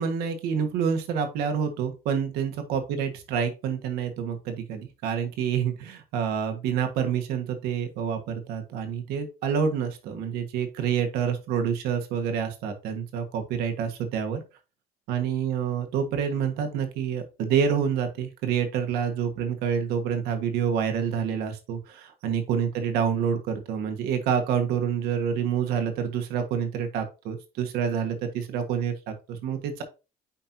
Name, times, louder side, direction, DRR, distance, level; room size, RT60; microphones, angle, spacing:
voice 1, 0.0-14.4 15.1-29.8, right 7 dB, 75° right, 6 dB, 1.5 m, -27 dB
9.8 x 4.4 x 2.7 m, 0.30 s
cardioid pair, 105°, 16 cm